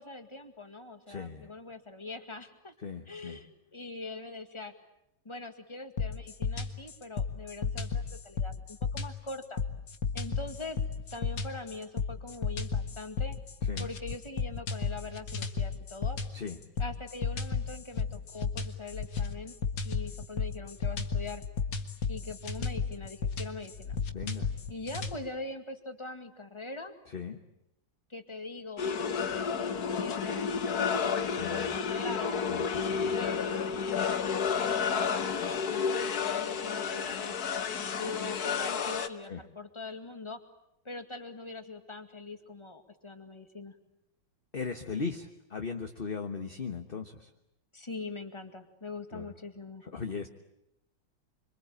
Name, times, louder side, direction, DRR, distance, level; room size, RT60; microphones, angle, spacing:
voice 1, 0.0-2.7 3.1-4.7 5.2-9.6 10.1-10.8 11.1-13.4 13.8-16.2 16.8-19.6 19.8-21.4 22.1-24.0 24.7-26.9 28.1-32.4 33.1-35.4 35.7-37.4 37.7-40.4 40.8-43.8 47.7-49.8, left 3 dB, 15° left, 7 dB, 2.1 m, -42 dB
voice 2, 1.1-1.5 2.8-3.4 13.6-13.9 16.3-16.6 24.1-24.5 27.1-27.4 31.3-31.8 32.5-33.2 39.3-39.4 44.5-47.3 49.1-49.3 49.8-50.3, left 5 dB, 35° left, 5 dB, 1.3 m, -38 dB
sound 1, 6.0-25.2, left 5 dB, 75° left, 2.4 m, -33 dB
sound 2, 28.8-39.1, left 6 dB, 60° left, 1.6 m, -31 dB
26.0 x 25.5 x 8.6 m, 0.82 s
omnidirectional pair, 2.0 m